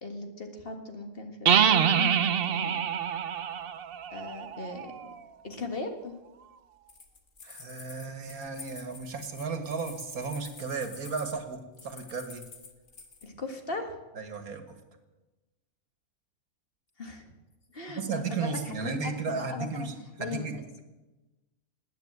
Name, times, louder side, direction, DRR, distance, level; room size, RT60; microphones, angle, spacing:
voice 1, 0.0-2.8 4.1-5.1 5.4-6.2 13.2-13.9 17.0-17.3 17.7-19.9 20.2-20.5, left 3 dB, 40° left, 5 dB, 1.9 m, -38 dB
sound 1, 1.5-5.1, right 8 dB, 50° right, 0.8 m, -26 dB
sound 2, 6.9-13.3, left 4 dB, 60° left, 2.0 m, -48 dB
voice 2, 7.4-12.4 14.2-14.8 17.9-20.8, right 4 dB, 85° right, 8 dB, 2.1 m, -35 dB
19.5 x 9.2 x 8.0 m, 1.1 s
omnidirectional pair, 1.5 m